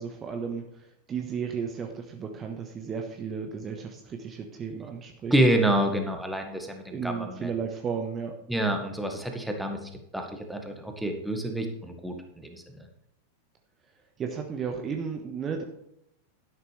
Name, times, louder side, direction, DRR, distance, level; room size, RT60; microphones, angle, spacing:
voice 1, 0.0-5.3 6.9-8.3 14.2-15.6, right 6 dB, 25° right, 4 dB, 1.4 m, -34 dB
voice 2, 5.3-7.5 8.5-12.9, right 1 dB, ahead, 4 dB, 1.8 m, -28 dB
12.5 x 11.0 x 3.4 m, 0.77 s
figure-of-eight pair, 90°, 0 cm